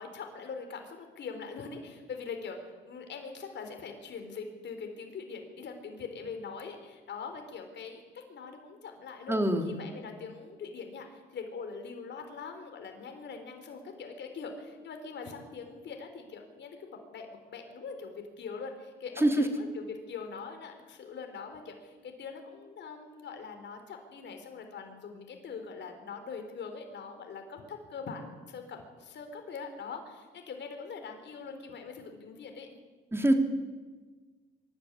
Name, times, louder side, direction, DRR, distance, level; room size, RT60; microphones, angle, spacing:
voice 1, 0.0-32.7, left 5 dB, 65° left, 5 dB, 4.0 m, -42 dB
voice 2, 9.3-9.7 19.2-19.4 33.1-33.3, right 1 dB, 10° right, 5 dB, 3.1 m, -24 dB
24.0 x 12.0 x 9.7 m, 1.4 s
cardioid pair, 90°, 20 cm